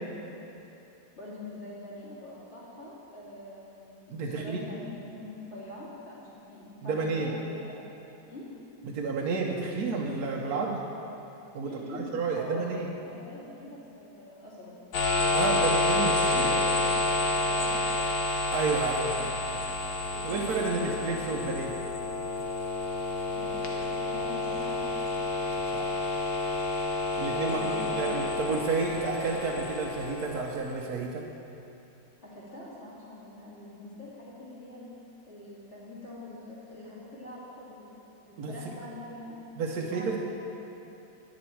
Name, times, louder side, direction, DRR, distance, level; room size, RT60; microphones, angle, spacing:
voice 1, 1.2-7.9 8.3-8.5 11.6-12.1 12.4-12.7 13.0-14.7 16.2-18.1 19.1-19.4 20.1-21.4 23.3-24.8 27.4-28.1 32.2-34.9 35.3-39.4 39.7-40.2, left 1 dB, 40° left, -8 dB, 2.9 m, -44 dB
voice 2, 4.1-4.6 6.8-7.3 8.8-10.8 11.5-12.9 15.3-16.6 18.5-19.3 20.2-21.7 25.7-26.0 27.2-31.2 38.4-38.7 39.6-40.2, right 4 dB, 65° right, -1 dB, 1.2 m, -31 dB
sound 1, 14.9-30.7, left 2 dB, 80° left, 1.9 m, -29 dB
10.5 x 10.5 x 4.5 m, 2.9 s
omnidirectional pair, 1.9 m